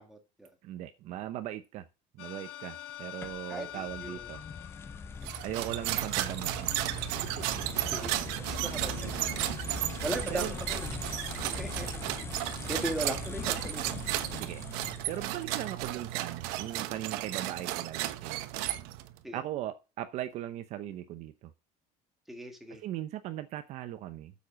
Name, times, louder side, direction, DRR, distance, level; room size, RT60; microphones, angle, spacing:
voice 1, 0.0-0.5 3.5-4.3 7.9-8.1 8.5-9.2 10.0-11.0 11.6-11.9 12.6-14.0 19.2-19.4 22.3-22.8, right 1 dB, ahead, 1.8 m, -38 dB
voice 2, 0.6-1.8 2.2-4.4 5.4-7.6 10.3-10.5 14.4-14.6 15.1-18.5 19.3-21.5 22.8-24.3, right 13 dB, 45° right, 0.7 m, -39 dB
sound 1, 2.2-6.1, left 12 dB, 90° left, 1.4 m, -45 dB
sound 2, 3.2-15.9, left 5 dB, 15° left, 0.5 m, -41 dB
sound 3, 5.2-19.2, right 15 dB, 80° right, 1.1 m, -34 dB
8.6 x 7.3 x 6.2 m
cardioid pair, 180°, 16 cm